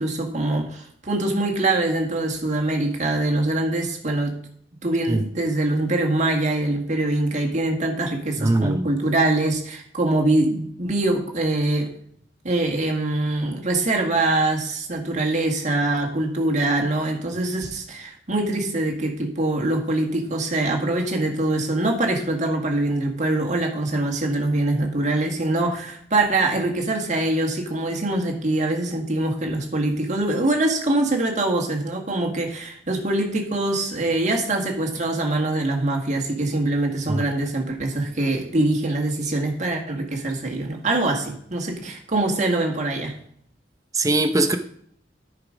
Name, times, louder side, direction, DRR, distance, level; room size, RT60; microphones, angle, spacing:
voice 1, 0.0-4.3 4.8-11.9 12.4-43.1, right 2 dB, 45° right, 2 dB, 1.7 m, -23 dB
voice 2, 8.4-8.9 37.1-37.2 43.9-44.6, right 2 dB, 20° right, 7 dB, 0.6 m, -21 dB
10.5 x 4.9 x 5.1 m, 0.65 s
head